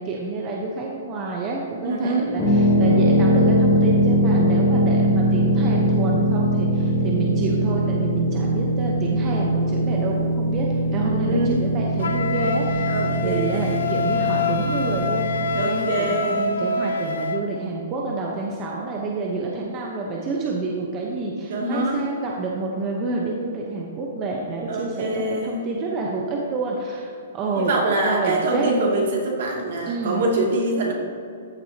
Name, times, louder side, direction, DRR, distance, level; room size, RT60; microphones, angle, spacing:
voice 1, 0.0-27.7 28.0-28.7 29.9-30.2, right 3 dB, 25° right, -1 dB, 0.9 m, -28 dB
voice 2, 1.8-2.3 11.0-11.6 12.9-13.9 15.5-16.6 21.5-22.1 24.7-25.6 27.5-30.9, right 2 dB, 60° right, -1 dB, 2.4 m, -24 dB
sound 1, 2.4-15.6, right 1 dB, 15° left, 2.0 m, -21 dB
Wind instrument woodwind instrument, 12.0-17.5, left 4 dB, 90° left, 0.8 m, -26 dB
14.0 x 7.6 x 2.9 m, 2.5 s
hypercardioid pair, 160°, 0 cm